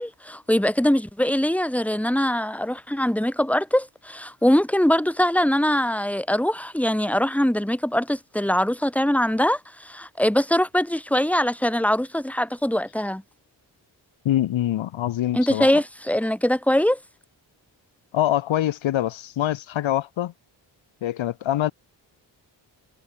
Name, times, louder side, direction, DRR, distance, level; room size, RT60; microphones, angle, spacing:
voice 1, 0.0-13.2 15.3-17.0, left 1 dB, 5° left, 2.4 m, -22 dB
voice 2, 14.2-15.7 18.1-20.3 21.0-21.7, left 12 dB, 75° left, 1.0 m, -24 dB
supercardioid pair, 45°, 47 cm